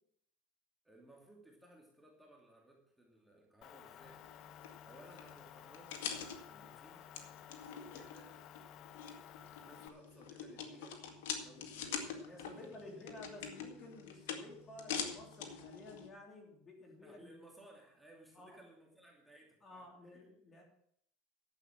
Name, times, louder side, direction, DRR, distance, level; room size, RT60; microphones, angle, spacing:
voice 1, 0.8-4.2 4.8-7.1 7.9-8.4 9.5-13.0 17.0-20.3, right 1 dB, 5° right, -2 dB, 2.6 m, -61 dB
Motor vehicle (road) / Engine, 3.6-9.9, left 11 dB, 45° left, 0.5 m, -55 dB
sound 1, 4.0-16.1, left 7 dB, 80° left, 2.0 m, -46 dB
voice 2, 12.3-17.3 18.3-18.6 19.6-20.6, left 2 dB, 25° left, 1 dB, 3.2 m, -53 dB
11.0 x 7.7 x 7.2 m, 0.70 s
supercardioid pair, 130°, 0 cm